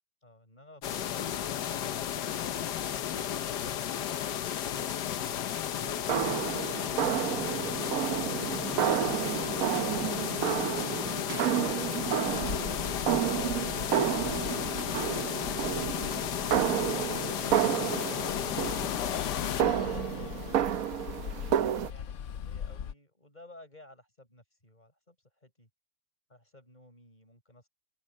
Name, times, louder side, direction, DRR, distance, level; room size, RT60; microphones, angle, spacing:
voice 1, 0.0-1.8 17.4-20.7 21.2-25.2 25.4-25.7 26.3-27.7, left 2 dB, 25° left, 7.3 m, -55 dB
sound 1, 0.8-19.6, left 10 dB, 75° left, 1.5 m, -33 dB
sound 2, 5.8-21.9, right 10 dB, 65° right, 1.1 m, -31 dB
Bus, 12.3-22.9, left 8 dB, 60° left, 0.9 m, -40 dB
omnidirectional pair, 1.8 m